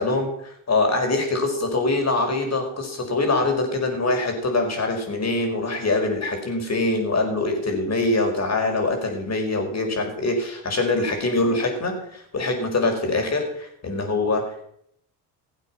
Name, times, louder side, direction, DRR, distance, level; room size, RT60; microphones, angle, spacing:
voice 1, 0.0-14.6, left 2 dB, 35° left, 3 dB, 5.0 m, -24 dB
17.0 x 8.2 x 5.9 m, 0.72 s
hypercardioid pair, 65°, 46 cm